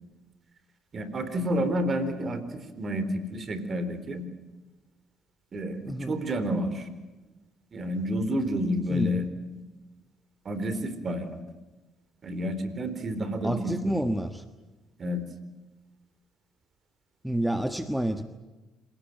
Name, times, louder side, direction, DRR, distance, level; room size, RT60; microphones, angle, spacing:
voice 1, 0.9-4.2 5.5-6.9 7.7-9.3 10.5-11.4 12.2-14.1 15.0-15.2, equal, 40° right, 11 dB, 3.9 m, -30 dB
voice 2, 5.8-6.2 8.9-9.2 13.4-14.4 17.2-18.2, right 1 dB, 5° right, 8 dB, 1.4 m, -29 dB
27.0 x 17.5 x 9.3 m, 1.2 s
supercardioid pair, 80°, 0 cm